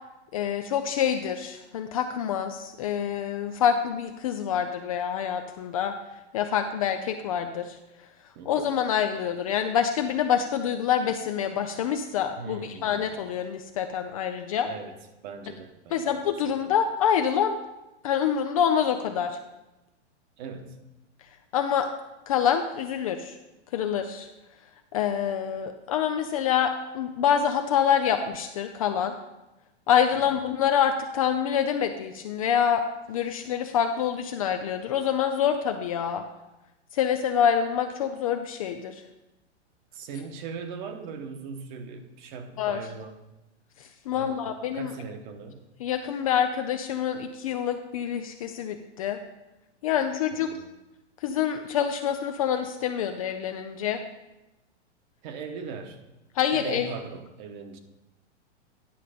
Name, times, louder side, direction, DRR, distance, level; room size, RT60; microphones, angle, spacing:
voice 1, 0.3-6.0 6.3-7.8 8.5-14.7 15.9-17.6 18.0-19.4 21.5-21.9 22.3-23.4 23.7-24.3 24.9-29.1 29.9-36.2 36.9-39.0 42.6-42.8 43.8-44.9 45.8-49.2 49.8-50.5 51.2-54.0 56.3-56.9, left 8 dB, 30° left, 7 dB, 0.4 m, -26 dB
voice 2, 8.3-8.7 12.4-13.2 14.6-14.9 15.2-16.1 20.4-20.8 30.3-30.4 39.9-43.2 44.1-45.6 50.3-50.7 55.2-56.0 56.5-57.8, right 5 dB, 40° right, 7 dB, 1.1 m, -39 dB
10.0 x 5.6 x 5.0 m, 0.99 s
hypercardioid pair, 150°, 36 cm